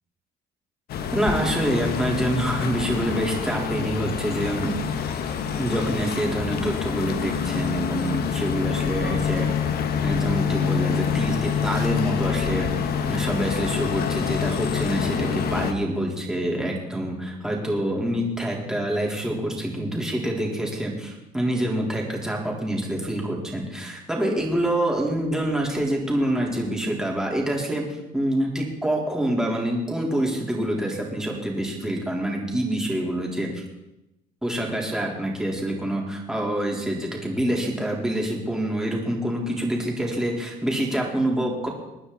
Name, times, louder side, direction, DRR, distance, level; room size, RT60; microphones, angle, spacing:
sound 1, 0.9-15.7, left 7 dB, 65° left, 1.4 m, -26 dB
voice 1, 1.1-4.8 5.6-9.5 10.0-12.7 13.1-27.9 28.1-33.6 34.4-41.7, right 1 dB, 5° right, -2 dB, 4.1 m, -26 dB
23.5 x 9.7 x 4.2 m, 0.93 s
cardioid pair, 110°, 17 cm